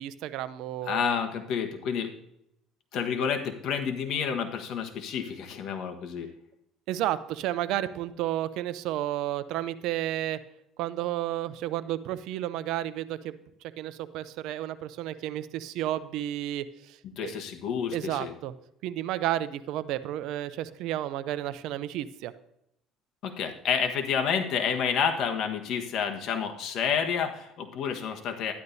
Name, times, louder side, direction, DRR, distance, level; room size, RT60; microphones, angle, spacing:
voice 1, 0.0-1.2 6.9-10.4 10.8-13.3 13.8-17.4 17.9-18.5 18.8-22.3, right 13 dB, 75° right, 14 dB, 0.6 m, -32 dB
voice 2, 0.8-2.1 2.9-6.3 17.0-18.3 23.2-28.5, left 7 dB, 60° left, 5 dB, 1.3 m, -29 dB
12.0 x 10.5 x 2.7 m, 0.79 s
cardioid pair, 105°, 0 cm